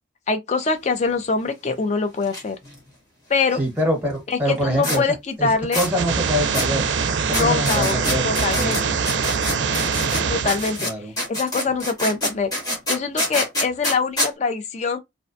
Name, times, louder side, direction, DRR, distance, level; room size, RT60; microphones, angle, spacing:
voice 1, 0.3-2.6 3.3-3.6 4.3-5.8 7.3-8.0 8.2-8.8 10.3-10.9 11.3-12.5 12.9-15.0, left 4 dB, 35° left, 0.4 m, -24 dB
sound 1, 2.2-2.4 2.7-2.8 4.8-5.0 5.7-5.9 6.5-6.7 7.3-10.2 10.5-14.3, left 1 dB, 20° left, 0.9 m, -26 dB
voice 2, 3.5-5.0 5.4-5.5 5.7-6.8 7.2-8.7 10.8-11.1, equal, 10° right, 1.0 m, -24 dB
sound 2, 5.8-10.8, right 5 dB, 65° right, 0.4 m, -23 dB
2.5 x 2.1 x 2.5 m
head